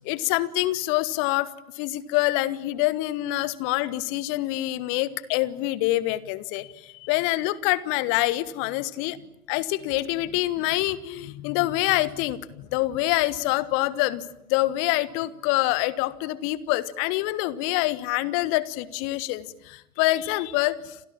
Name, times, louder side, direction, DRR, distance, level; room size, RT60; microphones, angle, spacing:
voice 1, 0.0-1.5 1.8-9.2 9.5-14.2 14.5-21.0, left 17 dB, 30° left, 17 dB, 1.4 m, -26 dB
30.0 x 26.5 x 7.4 m, 0.84 s
figure-of-eight pair, 110°, 43 cm